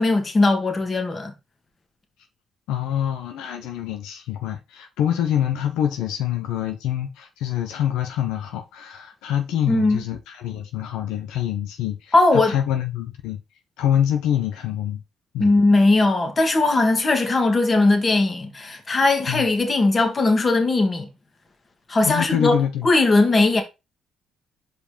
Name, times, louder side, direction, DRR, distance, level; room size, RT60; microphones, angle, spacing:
voice 1, 0.0-1.3 9.7-10.0 12.1-12.5 15.4-21.1 21.9-22.6 22.8-23.6, left 2 dB, 35° left, 1.9 m, -19 dB
voice 2, 2.7-13.4 13.8-15.0 15.3-15.6 19.3-19.5 22.0-22.9, left 10 dB, 85° left, 0.9 m, -25 dB
5.3 x 4.3 x 5.1 m
supercardioid pair, 75°, 0 cm